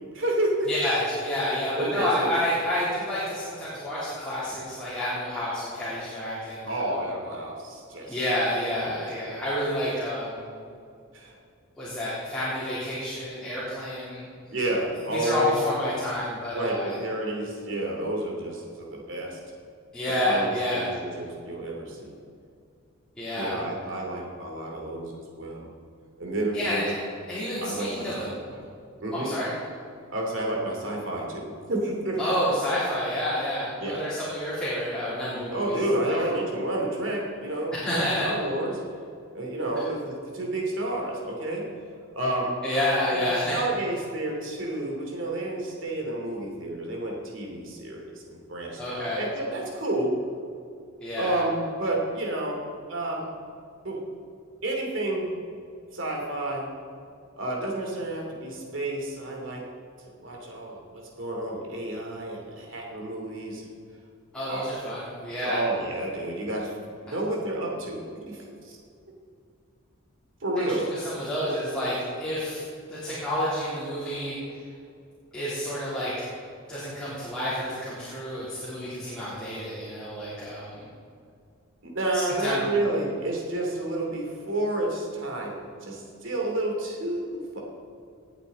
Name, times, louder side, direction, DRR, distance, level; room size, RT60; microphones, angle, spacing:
voice 1, 0.1-0.7 1.8-2.3 6.6-8.2 8.8-9.0 11.1-11.3 14.5-15.5 16.5-19.4 20.2-22.1 23.3-25.7 26.2-26.9 27.6-28.3 29.0-29.3 30.1-32.3 33.8-34.0 35.5-38.8 39.3-41.7 42.1-42.6 43.1-50.2 51.2-52.6 52.9-53.3 53.8-54.0 54.6-55.3 55.9-56.7 57.4-59.7 60.2-63.6 64.4-64.7 65.4-66.7 67.0-68.8 70.4-70.9 81.8-87.6, right 1 dB, 60° right, 0 dB, 2.8 m, -30 dB
voice 2, 0.7-6.9 8.1-10.6 11.8-14.3 15.1-16.9 19.9-20.9 23.2-23.6 26.5-26.9 27.3-28.3 29.1-29.5 32.2-35.8 36.1-36.2 37.8-38.3 39.7-39.8 42.6-43.6 48.8-49.2 51.0-51.4 64.3-65.6 70.6-74.6 75.3-76.3 76.7-80.8 82.1-82.6, left 1 dB, 5° left, -13 dB, 3.6 m, -29 dB
19.0 x 8.1 x 4.2 m, 2.4 s
head